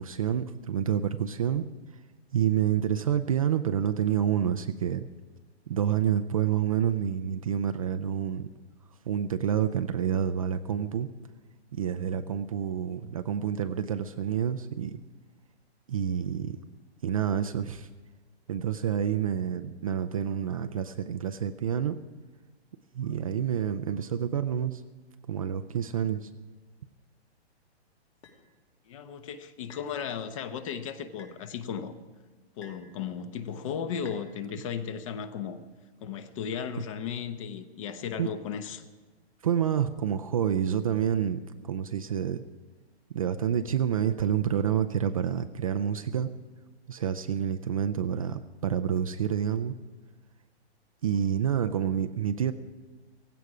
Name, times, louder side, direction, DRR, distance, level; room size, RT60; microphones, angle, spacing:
voice 1, 0.0-1.7 2.3-5.1 5.7-8.5 9.1-11.1 11.7-15.0 15.9-16.6 17.0-17.9 18.5-22.0 22.9-24.8 25.3-26.3 38.2-38.3 39.4-42.4 43.1-46.3 46.9-49.7 51.0-52.5, right 9 dB, 35° right, 8 dB, 0.4 m, -28 dB
sound 1, 28.2-28.4 29.7-30.0 31.2-31.4 32.6-32.9 34.0-34.3, left 5 dB, 65° left, 3.0 m, -51 dB
voice 2, 28.9-31.9 32.6-35.6 36.0-38.8, left 7 dB, 30° left, 11 dB, 0.8 m, -35 dB
17.0 x 16.0 x 4.9 m, 1.4 s
hypercardioid pair, 160°, 34 cm